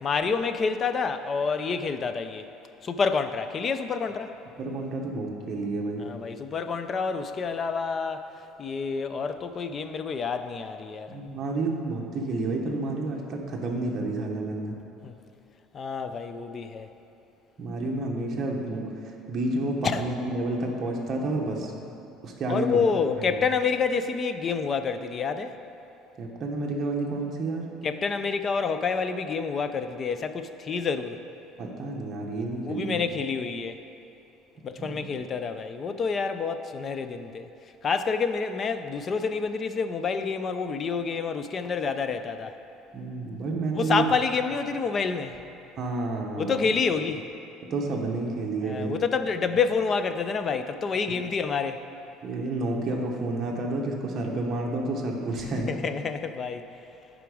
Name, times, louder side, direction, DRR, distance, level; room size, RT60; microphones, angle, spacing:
voice 1, 0.0-2.5 2.8-4.3 6.0-8.3 8.6-11.2 15.0-15.2 15.7-16.9 19.8-20.0 22.5-25.6 27.8-31.2 32.6-33.8 34.6-37.5 37.8-42.6 43.7-45.4 46.4-47.3 48.6-51.9 55.4-56.7, left 5 dB, 25° left, 9 dB, 0.4 m, -28 dB
voice 2, 4.6-6.0 11.1-14.8 17.6-21.7 22.2-22.8 26.2-27.7 31.6-33.0 34.8-35.0 42.9-44.1 45.8-46.6 47.7-48.9 52.2-55.8, right 2 dB, 30° right, -1 dB, 1.0 m, -30 dB
10.5 x 5.0 x 4.8 m, 2.8 s
cardioid pair, 160°, 0 cm